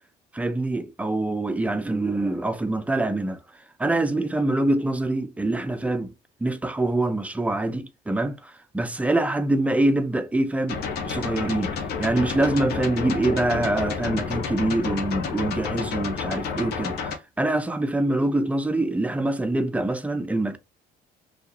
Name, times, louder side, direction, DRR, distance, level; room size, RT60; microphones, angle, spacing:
voice 1, 0.3-3.4 3.8-6.1 6.4-20.6, right 2 dB, 10° right, 0.3 m, -25 dB
sound 1, 10.7-17.2, left 5 dB, 70° left, 0.7 m, -30 dB
2.7 x 2.3 x 2.4 m
cardioid pair, 110°, 17 cm